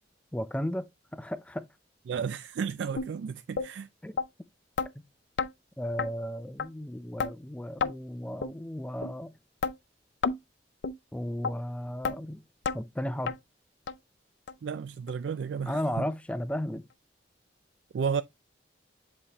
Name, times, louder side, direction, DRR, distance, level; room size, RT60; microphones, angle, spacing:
voice 1, 0.3-1.7 4.0-4.2 5.8-9.4 11.1-12.4 12.7-13.4 15.7-16.8, equal, 5° left, 0.5 m, -34 dB
voice 2, 2.1-3.9 14.6-16.1 17.9-18.2, right 6 dB, 70° right, 0.3 m, -32 dB
sound 1, 3.0-3.1 3.6-3.7 4.2-4.3 4.8-4.9 5.4-5.5 6.0-6.1 6.6-6.7 7.2-7.3 7.8-7.9 8.4-8.5 9.0-9.1 9.6-9.8 10.2-10.4 10.8-11.0 11.4-11.5 12.0-12.2 12.7-12.8 13.3-13.4 13.9-14.0 14.5-14.6 15.1-15.2 15.7-15.8, left 5 dB, 70° left, 0.5 m, -30 dB
7.7 x 4.1 x 3.0 m
head